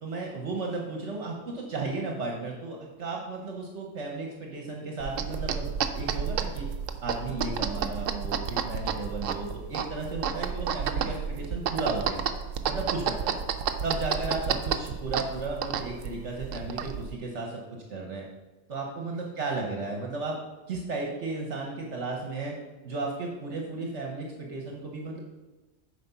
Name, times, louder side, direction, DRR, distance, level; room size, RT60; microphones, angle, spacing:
voice 1, 0.0-5.7 5.9-6.7 7.0-12.2 12.7-13.3 13.8-17.6 17.9-18.3 18.7-20.4 20.7-22.6 22.8-25.2, right 3 dB, 65° right, -1 dB, 1.3 m, -34 dB
sound 1, 5.0-17.1, right 7 dB, 90° right, 1.0 m, -31 dB
8.4 x 5.1 x 5.6 m, 1.2 s
omnidirectional pair, 1.3 m